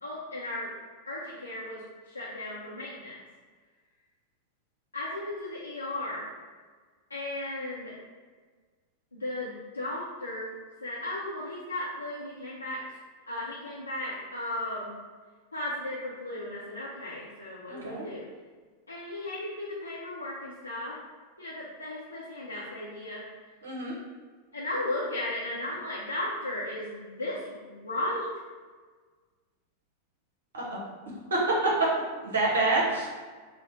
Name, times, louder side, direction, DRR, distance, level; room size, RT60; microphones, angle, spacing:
voice 1, 0.0-0.7 1.1-3.1 4.9-6.3 7.1-7.9 9.1-10.5 10.8-12.8 13.3-14.9 15.5-18.2 18.9-21.0 21.4-23.2 24.5-28.3, left 1 dB, 80° left, -6 dB, 0.6 m, -35 dB
voice 2, 17.7-18.0 23.6-23.9 30.5-30.8 31.3-31.7 32.2-33.1, right 2 dB, 70° right, -4 dB, 0.8 m, -27 dB
4.2 x 2.1 x 4.1 m, 1.5 s
figure-of-eight pair, 90°, 0 cm